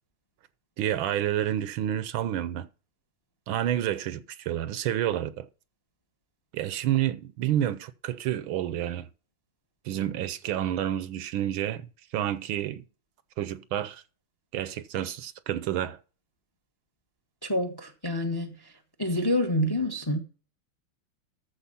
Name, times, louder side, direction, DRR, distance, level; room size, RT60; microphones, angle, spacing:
voice 1, 0.8-2.7 3.5-5.5 6.5-9.1 9.8-12.9 13.4-14.0 14.5-16.0, right 11 dB, 75° right, 1.4 m, -29 dB
voice 2, 17.4-18.6 19.0-20.2, left 1 dB, 15° left, 0.8 m, -27 dB
14.0 x 4.7 x 5.7 m
omnidirectional pair, 2.4 m